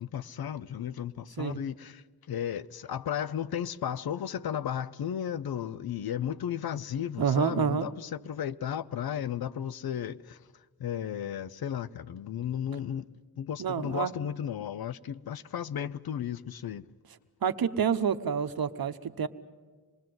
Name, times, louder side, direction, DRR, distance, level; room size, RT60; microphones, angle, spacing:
voice 1, 0.0-10.4 10.8-13.1 13.4-16.8, left 9 dB, 65° left, 0.6 m, -34 dB
voice 2, 7.2-7.9 13.6-14.1 17.4-19.3, right 7 dB, 65° right, 1.0 m, -28 dB
26.0 x 20.5 x 7.8 m
wide cardioid pair, 95°, 39 cm